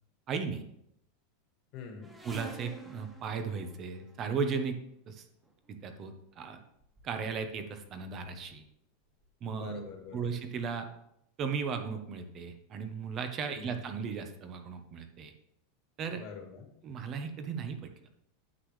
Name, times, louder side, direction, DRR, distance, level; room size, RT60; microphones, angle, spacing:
voice 1, 0.3-0.6 2.2-4.8 5.1-5.2 5.7-6.6 7.0-8.6 9.4-9.8 10.1-10.9 11.4-15.3 16.0-16.2 16.8-17.9, right 5 dB, 25° right, 7 dB, 0.9 m, -36 dB
voice 2, 1.7-2.1 9.5-10.4 13.5-13.8 16.1-16.7, left 5 dB, 40° left, 3 dB, 1.7 m, -45 dB
sound 1, 2.0-4.5 5.5-5.7 6.5-6.6 6.8-7.7 8.0-8.5 9.2-9.3 9.6-9.7, right 2 dB, 5° right, 1.1 m, -49 dB
9.7 x 8.2 x 3.2 m, 0.75 s
supercardioid pair, 170°, 0 cm